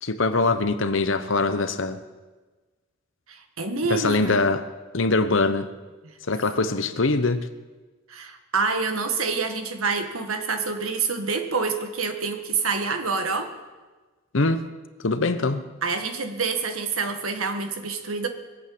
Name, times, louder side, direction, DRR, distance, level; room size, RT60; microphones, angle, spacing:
voice 1, 0.0-2.0 3.9-4.6 4.9-5.7 6.3-7.5 14.3-14.6 15.0-15.6, left 3 dB, 65° left, 11 dB, 1.0 m, -23 dB
voice 2, 3.3-4.4 8.1-13.5 15.8-18.3, right 4 dB, 85° right, 6 dB, 1.7 m, -27 dB
21.5 x 8.2 x 7.9 m, 1.3 s
head